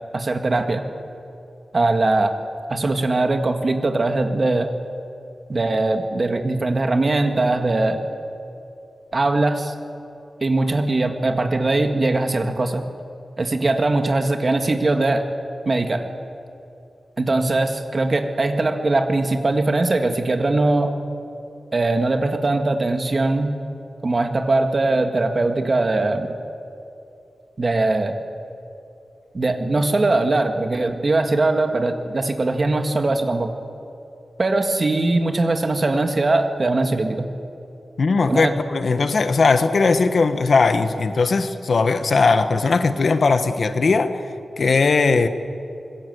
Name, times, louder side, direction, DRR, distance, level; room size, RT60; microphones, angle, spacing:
voice 1, 0.1-0.8 1.7-2.3 2.7-4.7 5.5-8.0 9.1-9.7 10.4-12.8 13.4-15.2 15.7-16.0 17.2-21.0 21.7-23.6 24.0-26.3 27.6-28.1 29.3-33.5 34.4-37.2 38.3-38.6, right 2 dB, 35° right, 5 dB, 1.8 m, -21 dB
voice 2, 38.0-44.2 44.6-45.3, left 4 dB, 55° left, 9 dB, 1.2 m, -18 dB
25.5 x 21.5 x 8.0 m, 2.7 s
wide cardioid pair, 155°, 0 cm